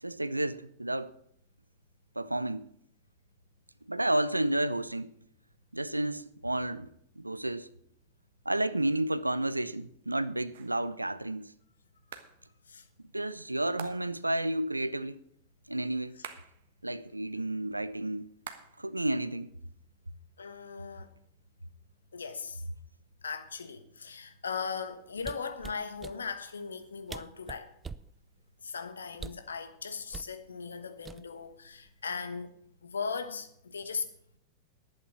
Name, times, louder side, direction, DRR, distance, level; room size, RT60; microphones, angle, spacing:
voice 1, 0.0-1.1 2.2-2.7 3.9-5.1 5.7-7.7 8.5-11.5 13.1-15.2 15.7-16.2 16.8-18.3 18.8-19.5, right 1 dB, 85° right, 0.5 m, -31 dB
sound 1, 10.5-10.9 12.1-12.4 13.8-14.3 16.2-16.7 18.4-18.9 19.2-20.2, right 8 dB, 60° right, 1.2 m, -47 dB
voice 2, 20.4-21.1 22.1-22.6 23.2-27.7 28.6-32.5 32.8-34.1, left 5 dB, 70° left, 1.2 m, -38 dB
sound 2, 25.2-26.2 26.8-26.9 27.1-28.1 29.1-29.5 30.1-30.3 31.0-31.5 31.9-32.1, right 5 dB, 15° right, 0.4 m, -43 dB
11.0 x 8.7 x 7.3 m
figure-of-eight pair, 90°, 0 cm